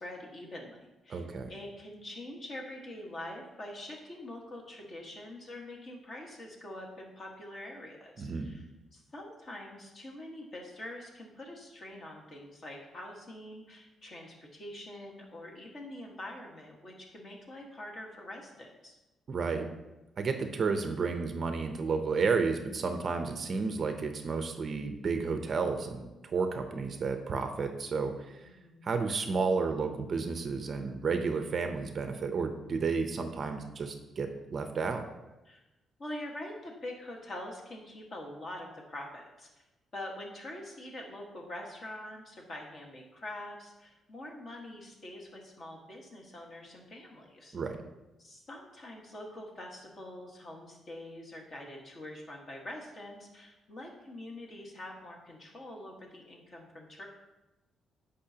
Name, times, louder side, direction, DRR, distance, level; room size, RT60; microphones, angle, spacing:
voice 1, 0.0-8.6 8.9-19.0 28.4-28.9 35.4-35.6 36.0-39.6 39.9-47.6 48.2-57.1, left 1 dB, 35° left, 0 dB, 1.5 m, -45 dB
voice 2, 1.1-1.5 8.2-8.5 19.3-19.7 20.2-28.5 28.8-35.0 47.5-47.8, right 4 dB, 35° right, 6 dB, 0.6 m, -32 dB
15.5 x 5.4 x 2.8 m, 1.0 s
cardioid pair, 175°, 0 cm